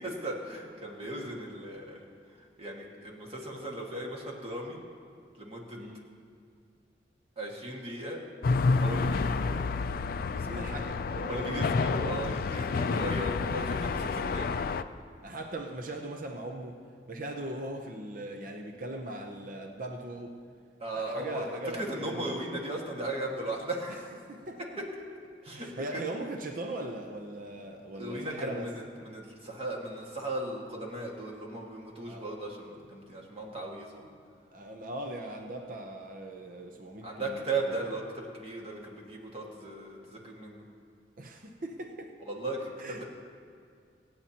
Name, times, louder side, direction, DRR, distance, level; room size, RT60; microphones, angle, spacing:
voice 1, 0.0-2.1 2.6-4.8 5.4-5.8 7.4-8.2 8.8-9.7 10.3-10.5 11.3-14.6 20.8-21.5 21.7-24.1 25.4-26.0 27.9-34.1 37.0-40.6 42.3-43.0, right 2 dB, 35° right, -1 dB, 1.8 m, -37 dB
sound 1, 8.4-14.8, left 4 dB, 55° left, 0.4 m, -29 dB
voice 2, 10.4-11.9 12.7-13.1 15.2-20.4 20.9-22.4 23.9-24.0 24.3-24.8 25.5-28.7 32.1-32.3 34.5-37.8 41.2-42.1 42.8-43.0, right 2 dB, 50° right, 3 dB, 0.7 m, -40 dB
26.0 x 8.7 x 2.9 m, 2.2 s
head